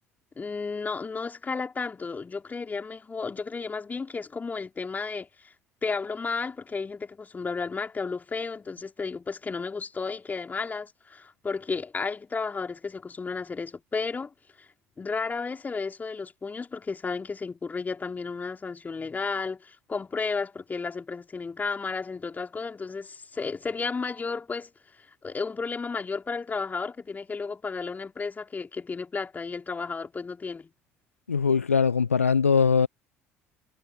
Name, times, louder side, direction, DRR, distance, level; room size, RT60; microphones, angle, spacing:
voice 1, 0.4-5.3 5.8-14.3 15.0-24.7 25.2-30.7, left 4 dB, 25° left, 3.7 m, -33 dB
voice 2, 31.3-32.9, left 5 dB, 80° left, 0.7 m, -21 dB
figure-of-eight pair, 60°, 7 cm